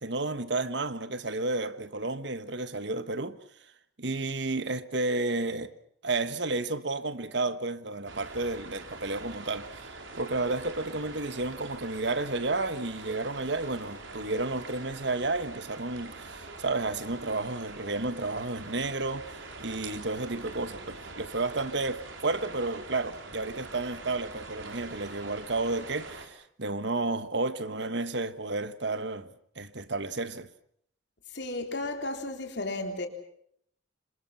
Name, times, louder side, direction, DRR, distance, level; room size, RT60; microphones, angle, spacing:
voice 1, 0.0-3.4 4.0-5.7 6.0-29.3 29.6-30.5, right 2 dB, 60° right, 1.3 m, -32 dB
sound 1, 8.1-26.3, right 3 dB, 75° right, 4.5 m, -44 dB
voice 2, 31.3-33.1, left 2 dB, 60° left, 3.8 m, -33 dB
26.5 x 26.5 x 5.8 m
head